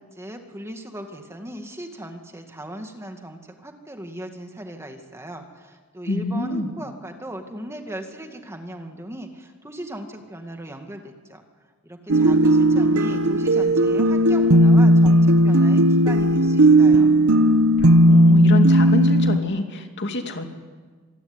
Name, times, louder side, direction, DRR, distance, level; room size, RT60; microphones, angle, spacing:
voice 1, 0.0-11.4 11.8-17.2, right 1 dB, 15° right, 5 dB, 2.1 m, -37 dB
voice 2, 6.1-6.7 17.8-20.5, left 1 dB, 55° left, 5 dB, 2.7 m, -26 dB
sound 1, 12.1-19.4, right 1 dB, 80° right, 1.0 m, -15 dB
26.0 x 21.5 x 9.8 m, 1.4 s
head